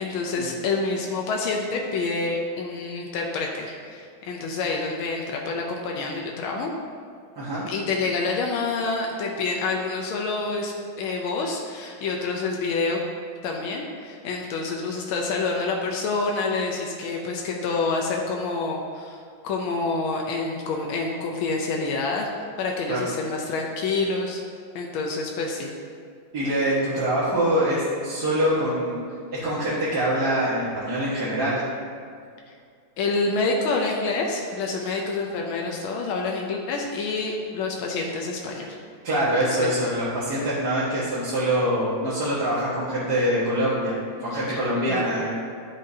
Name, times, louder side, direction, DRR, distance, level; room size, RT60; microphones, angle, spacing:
voice 1, 0.0-6.7 7.7-10.7 11.0-13.0 13.4-22.3 22.6-24.4 24.8-25.7 32.5-32.6 33.0-38.8 39.4-39.7 44.5-44.6 44.9-45.1, left 3 dB, 85° left, 0 dB, 1.6 m, -27 dB
voice 2, 7.4-7.7 22.9-23.0 26.3-29.0 29.3-31.6 39.0-45.4, right 1 dB, 50° right, -11 dB, 2.0 m, -24 dB
12.0 x 5.6 x 2.8 m, 2.2 s
omnidirectional pair, 2.2 m